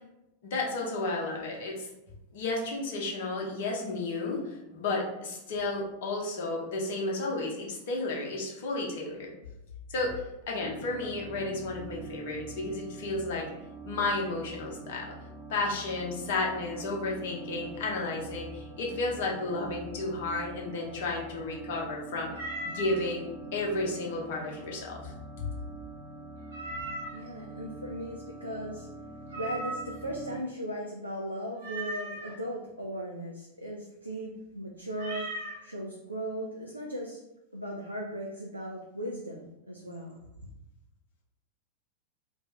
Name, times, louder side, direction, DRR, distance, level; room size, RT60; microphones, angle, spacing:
voice 1, 0.4-1.9 2.3-9.3 9.9-13.5 13.9-15.1 15.5-22.3 22.6-25.1 25.4-25.5, left 2 dB, 55° left, -1 dB, 0.7 m, -32 dB
sound 1, 10.6-30.4, right 3 dB, 15° right, 0.5 m, -44 dB
Meow, 22.3-23.0 26.5-27.3 29.3-30.1 31.6-32.3 34.9-35.6, right 1 dB, 65° right, 0.9 m, -37 dB
voice 2, 27.1-28.9 29.3-35.3 35.6-37.2 37.5-40.2, equal, 85° right, -1 dB, 0.3 m, -37 dB
2.5 x 2.0 x 3.4 m, 0.89 s
figure-of-eight pair, 90°, 0 cm